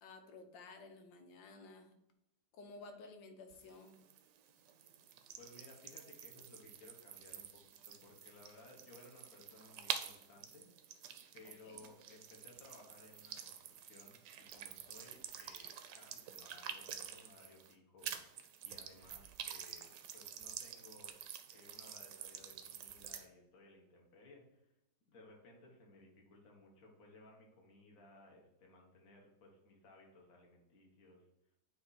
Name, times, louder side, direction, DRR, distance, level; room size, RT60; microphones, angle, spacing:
voice 1, 0.0-1.9 2.5-4.0 11.6-11.8, left 3 dB, 85° left, 6 dB, 1.5 m, -54 dB
sound 1, 3.5-17.7 18.0-23.3, right 9 dB, 75° right, 1.2 m, -48 dB
voice 2, 5.4-7.6 7.8-10.6 11.3-14.2 14.5-18.3 18.6-21.2 21.5-24.7 25.1-31.3, left 2 dB, 50° left, 0 dB, 1.7 m, -60 dB
8.4 x 2.9 x 4.1 m, 0.86 s
omnidirectional pair, 2.0 m